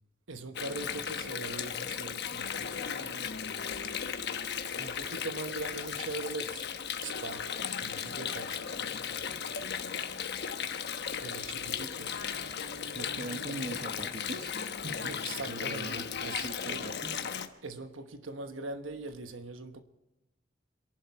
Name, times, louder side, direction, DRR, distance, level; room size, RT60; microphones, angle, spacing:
voice 1, 0.3-3.3 4.7-6.7 7.0-8.7 11.0-12.2 15.0-16.9 17.6-19.8, right 3 dB, 85° right, 1.2 m, -41 dB
Water, 0.5-17.5, left 7 dB, 60° left, 1.1 m, -36 dB
voice 2, 12.9-15.1 15.5-17.2, right 2 dB, 45° right, 1.2 m, -41 dB
26.5 x 11.5 x 4.7 m
head